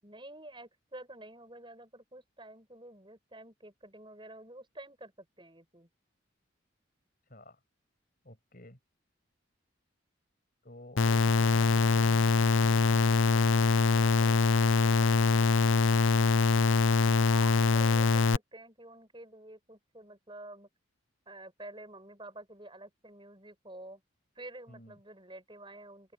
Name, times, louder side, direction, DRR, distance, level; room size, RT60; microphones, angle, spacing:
voice 1, 0.0-5.9 17.3-20.7 21.3-24.0 24.4-26.1, right 1 dB, 25° right, 7.1 m, -49 dB
voice 2, 7.3-7.6 8.2-8.8 24.7-25.0, left 1 dB, 45° left, 6.8 m, -51 dB
sound 1, 11.0-18.4, left 4 dB, 75° left, 0.7 m, -24 dB
open air
head